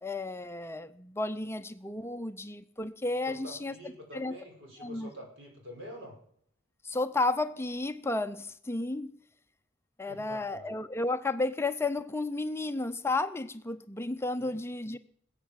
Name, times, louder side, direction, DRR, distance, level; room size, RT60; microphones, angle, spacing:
voice 1, 0.0-3.7 4.1-4.3 4.8-5.1 6.8-9.2 10.0-15.0, left 2 dB, 15° left, 0.5 m, -32 dB
voice 2, 3.3-6.2 10.1-10.7 14.4-14.6, equal, 65° right, 5.6 m, -47 dB
20.5 x 8.2 x 7.6 m
head